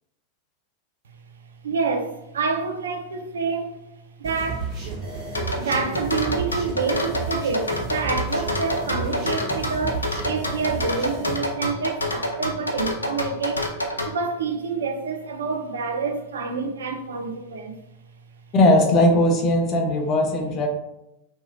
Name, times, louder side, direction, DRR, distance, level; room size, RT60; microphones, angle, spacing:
voice 1, 1.6-3.8 4.2-4.7 5.6-13.7 14.0-17.8, right 4 dB, 65° right, 0.3 m, -27 dB
sound 1, 4.2-11.3, right 4 dB, 40° right, 1.5 m, -32 dB
sound 2, 5.3-14.1, left 1 dB, 80° left, 0.4 m, -27 dB
voice 2, 18.5-20.7, left 1 dB, 30° left, 0.5 m, -18 dB
2.8 x 2.6 x 2.5 m
figure-of-eight pair, 90°, 0 cm